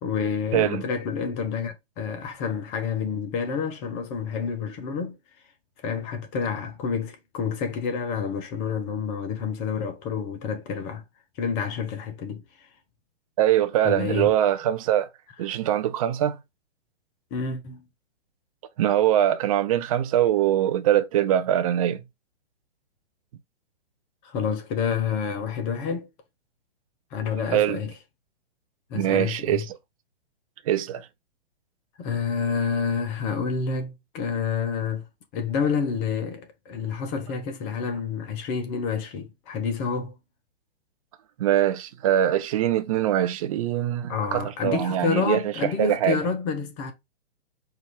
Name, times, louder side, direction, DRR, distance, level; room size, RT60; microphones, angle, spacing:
voice 1, 0.0-5.2 5.8-11.0 11.4-12.7 13.8-14.3 17.3-17.8 24.2-26.1 27.1-27.9 28.9-29.6 32.0-35.1 35.3-40.1 44.1-46.9, left 6 dB, 20° left, 0.5 m, -28 dB
voice 2, 0.5-0.8 13.4-15.1 15.4-16.4 18.8-22.0 27.5-27.8 28.9-29.6 30.7-31.1 41.4-46.2, right 11 dB, 35° right, 0.5 m, -23 dB
4.5 x 2.4 x 3.2 m
figure-of-eight pair, 120°, 32 cm